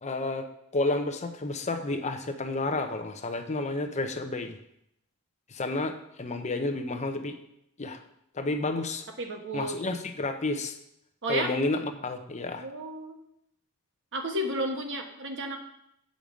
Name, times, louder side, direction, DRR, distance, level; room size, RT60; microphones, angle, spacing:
voice 1, 0.0-0.5 0.7-4.5 5.5-7.3 7.8-8.0 8.3-9.0 9.5-10.7 11.3-12.6, left 2 dB, 30° left, 7 dB, 0.7 m, -30 dB
voice 2, 9.2-9.8 11.2-11.5 12.6-13.2 14.1-15.6, right 1 dB, 60° right, 3 dB, 1.3 m, -32 dB
8.6 x 5.2 x 6.2 m, 0.77 s
head